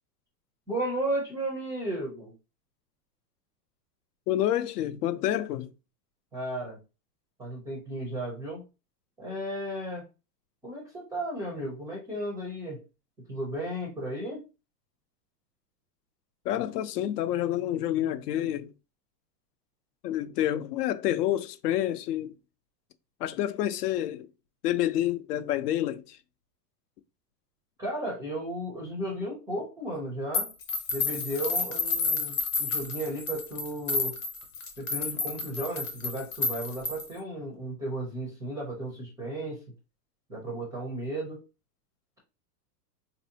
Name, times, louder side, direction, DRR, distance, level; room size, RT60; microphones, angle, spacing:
voice 1, 0.7-2.3 6.3-6.8 7.4-8.6 9.2-10.0 10.6-12.8 13.3-14.4 27.8-30.5 30.9-34.2 34.8-39.6 40.3-41.4, right 1 dB, 10° right, 0.4 m, -34 dB
voice 2, 4.3-5.7 16.4-18.7 20.0-22.3 23.2-24.3 24.6-26.2, left 12 dB, 70° left, 0.7 m, -28 dB
sound 1, 30.3-37.2, left 4 dB, 20° left, 0.9 m, -30 dB
4.2 x 2.6 x 2.7 m
supercardioid pair, 150°, 50 cm